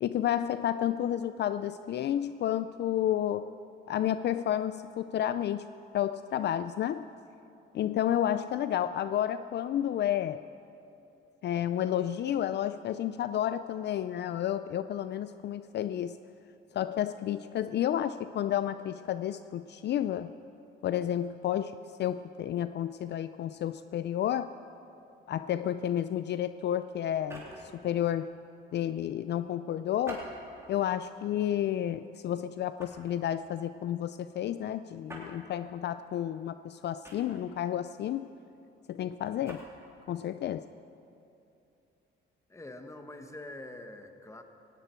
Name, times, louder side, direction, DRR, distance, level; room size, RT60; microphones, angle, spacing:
voice 1, 0.0-3.5 3.9-5.7 5.9-7.1 7.7-10.4 11.4-16.2 16.7-20.3 20.8-24.5 25.3-28.3 28.7-30.2 30.7-38.3 38.9-39.7 40.1-40.7, left 11 dB, 60° left, 12 dB, 0.4 m, -31 dB
sound 1, 27.1-27.8 30.0-30.8 31.4-31.6 32.8-33.1 35.1-35.3 37.0-37.6 39.2-39.7, right 1 dB, 15° right, 3.8 m, -45 dB
voice 2, 42.5-44.4, left 2 dB, 15° left, 6 dB, 1.4 m, -45 dB
18.5 x 17.0 x 4.5 m, 2.8 s
cardioid pair, 90°, 20 cm